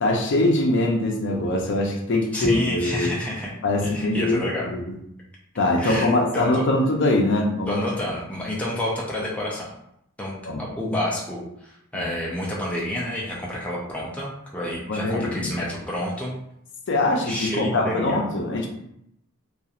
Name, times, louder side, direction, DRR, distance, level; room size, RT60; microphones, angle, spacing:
voice 1, 0.0-3.2 3.6-4.8 5.6-7.8 10.4-10.6 11.9-12.1 14.9-15.5 16.9-18.7, left 2 dB, 55° left, 0 dB, 0.5 m, -23 dB
voice 2, 2.3-3.5 3.8-4.7 5.8-6.6 7.7-9.7 10.2-16.3 17.2-18.3, left 1 dB, 5° left, -5 dB, 0.4 m, -29 dB
2.8 x 2.4 x 2.4 m, 0.76 s
head